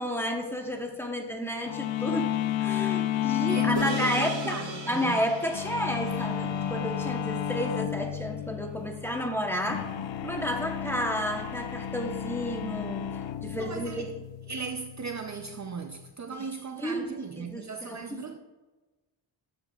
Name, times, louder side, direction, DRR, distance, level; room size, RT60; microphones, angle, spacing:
voice 1, 0.0-9.9 10.2-14.1 16.3-16.5 16.8-18.4, equal, 5° left, 1.0 m, -32 dB
sound 1, 1.7-16.1, left 11 dB, 90° left, 0.6 m, -32 dB
voice 2, 3.4-5.3 13.6-14.1 14.5-18.4, right 5 dB, 40° right, 0.6 m, -37 dB
sound 2, 3.8-8.3, right 4 dB, 85° right, 1.7 m, -40 dB
13.0 x 7.7 x 2.4 m
wide cardioid pair, 165°, 44 cm